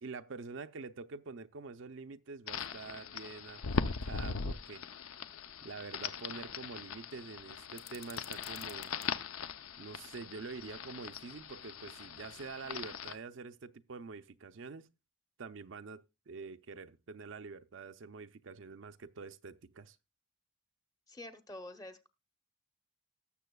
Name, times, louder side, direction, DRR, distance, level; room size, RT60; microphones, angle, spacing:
voice 1, 0.0-4.8 5.6-8.9 9.8-14.9 15.4-20.0, right 4 dB, 65° right, 0.5 m, -46 dB
sound 1, 2.5-13.1, left 5 dB, 85° left, 0.6 m, -40 dB
sound 2, 7.7-9.1, left 10 dB, 45° left, 1.1 m, -52 dB
voice 2, 21.1-22.1, left 1 dB, 15° left, 0.7 m, -47 dB
18.5 x 7.0 x 2.3 m
head